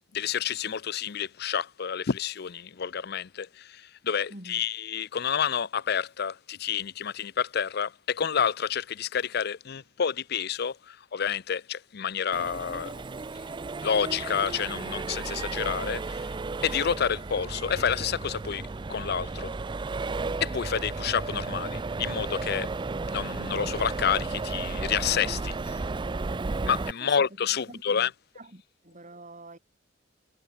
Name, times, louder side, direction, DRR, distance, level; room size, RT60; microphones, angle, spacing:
voice 1, 0.1-3.6 4.0-12.9 13.8-16.2 16.6-18.6 18.9-19.5 20.4-22.7 23.1-25.5 26.7-28.1, left 7 dB, 55° left, 0.6 m, -29 dB
voice 2, 4.3-4.7 20.9-21.0 27.0-28.0 28.4-29.6, right 2 dB, 40° right, 5.7 m, -47 dB
Accelerating revving vroom, 12.3-26.9, right 3 dB, 25° right, 0.4 m, -33 dB
head